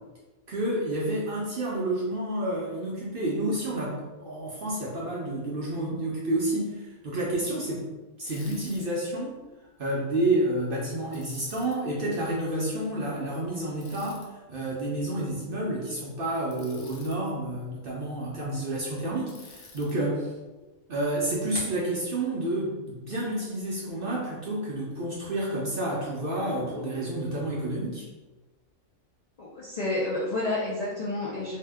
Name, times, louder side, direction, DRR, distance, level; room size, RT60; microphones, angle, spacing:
voice 1, 0.5-7.9 8.2-9.4 9.8-20.3 20.9-28.0, right 1 dB, 60° right, -5 dB, 0.6 m, -30 dB
Bicycle, 8.2-8.9 11.1-11.8 13.8-14.3 16.5-17.2 19.3-20.0, left 4 dB, 85° left, 1.0 m, -50 dB
voice 2, 29.4-31.6, left 2 dB, 65° left, -6 dB, 0.4 m, -30 dB
2.7 x 2.1 x 3.4 m, 1.2 s
omnidirectional pair, 1.4 m